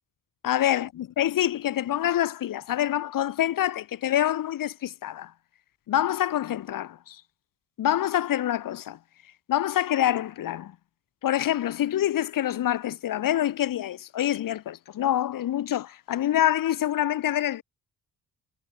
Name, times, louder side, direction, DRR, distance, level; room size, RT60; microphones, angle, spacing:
voice 1, 0.4-5.3 5.9-7.2 7.8-9.0 9.5-10.7 11.2-17.6, left 12 dB, 75° left, 4.8 m, -26 dB
cardioid pair, 105°, 33 cm